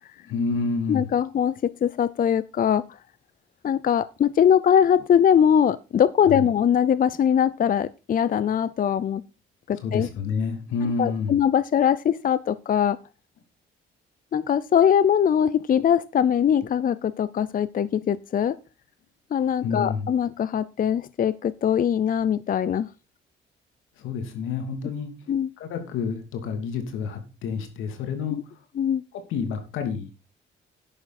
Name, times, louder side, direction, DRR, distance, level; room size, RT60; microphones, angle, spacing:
voice 1, 0.2-1.1 6.3-6.4 9.8-11.4 19.6-20.1 24.0-25.1 25.6-28.4 29.3-30.1, left 5 dB, 90° left, 6 dB, 2.8 m, -29 dB
voice 2, 0.9-1.5 1.8-2.8 3.6-9.2 9.7-10.1 11.0-13.0 14.3-18.6 19.3-22.9 25.3-25.5 28.3-28.4 28.8-29.0, left 8 dB, 45° left, 17 dB, 0.5 m, -21 dB
11.0 x 9.0 x 4.2 m, 0.30 s
cardioid pair, 90°, 20 cm